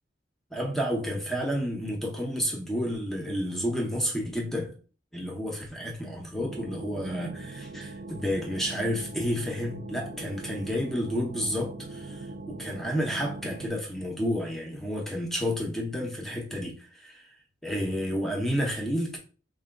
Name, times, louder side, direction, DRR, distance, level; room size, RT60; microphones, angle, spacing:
voice 1, 0.5-4.8 5.1-17.3 17.6-19.2, equal, ahead, 0.7 m, -30 dB
sound 1, 6.4-13.7, right 2 dB, 50° right, 0.5 m, -41 dB
4.1 x 2.2 x 3.6 m
head